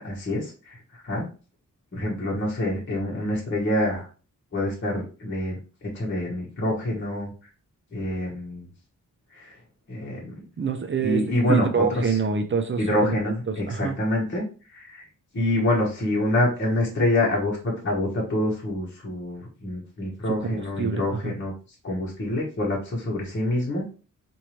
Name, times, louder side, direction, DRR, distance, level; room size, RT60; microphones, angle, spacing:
voice 1, 0.0-1.3 1.9-4.1 4.5-5.6 5.9-7.3 7.9-8.7 9.3-9.5 9.9-10.3 11.0-12.2 12.8-14.4 14.7-15.0 15.3-21.5 21.8-23.9, left 1 dB, 35° left, -4 dB, 1.2 m, -26 dB
voice 2, 10.6-14.0 20.3-21.3, right 6 dB, 40° right, 7 dB, 0.5 m, -27 dB
4.6 x 2.7 x 3.1 m, 0.35 s
wide cardioid pair, 145°, 32 cm